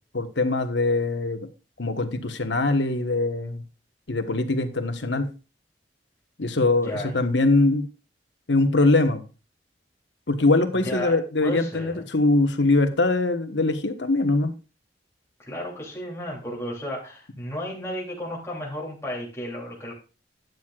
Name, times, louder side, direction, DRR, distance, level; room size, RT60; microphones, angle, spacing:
voice 1, 0.1-1.5 1.8-3.6 4.1-5.3 6.4-7.8 8.5-9.2 10.3-14.5, left 2 dB, 85° left, 8 dB, 1.3 m, -22 dB
voice 2, 6.8-7.1 10.8-12.0 15.4-19.9, equal, 15° left, -4 dB, 3.0 m, -33 dB
12.5 x 9.3 x 2.4 m, 0.33 s
head